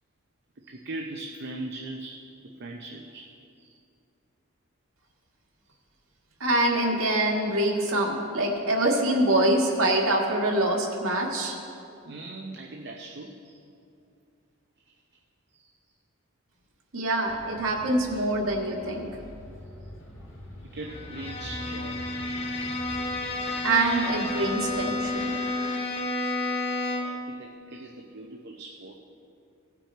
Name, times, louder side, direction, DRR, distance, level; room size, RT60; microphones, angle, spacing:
voice 1, 0.6-2.2 2.6-3.3 3.6-3.7 12.0-13.6 15.5-15.7 17.4-17.5 20.7-22.0 27.0-29.0, right 2 dB, 55° right, 1 dB, 0.6 m, -40 dB
voice 2, 6.4-11.6 16.9-19.1 23.6-25.4, right 1 dB, 90° right, -1 dB, 1.7 m, -25 dB
Bus, 17.3-25.1, equal, 65° left, 1.9 m, -45 dB
Bowed string instrument, 20.8-27.3, left 2 dB, 30° left, 1.2 m, -31 dB
17.0 x 6.1 x 4.4 m, 2.5 s
head